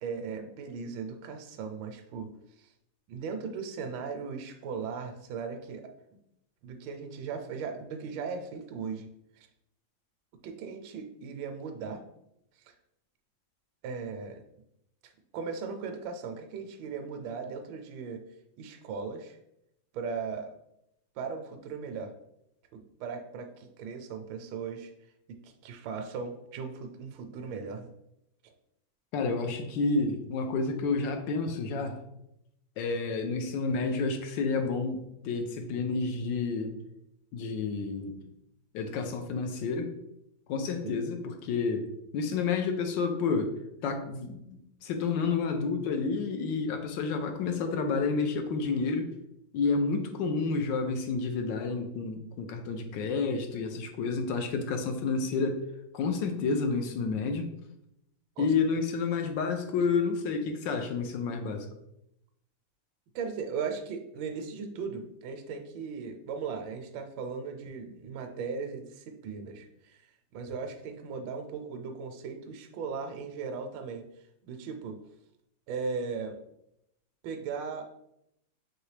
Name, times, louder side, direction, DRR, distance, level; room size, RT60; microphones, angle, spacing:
voice 1, 0.0-2.3 2.6-2.7 3.1-5.9 6.6-9.1 9.4-9.5 10.4-12.0 12.7-12.8 13.8-14.4 15.3-18.2 18.6-19.4 19.9-20.5 21.2-22.1 22.7-24.9 25.4-27.9 28.4-28.5 40.8-41.0 58.4-58.5 63.1-70.0 70.3-74.1 74.4-75.0 75.7-76.4 77.2-77.9, right 5 dB, 80° right, 5 dB, 1.2 m, -37 dB
voice 2, 29.1-32.0 32.8-36.8 37.3-38.2 38.7-39.9 40.5-41.9 42.1-43.6 43.8-49.1 49.5-55.6 55.9-57.5 58.4-61.7, left 4 dB, 80° left, 5 dB, 1.3 m, -30 dB
4.7 x 3.2 x 3.2 m, 0.80 s
omnidirectional pair, 2.1 m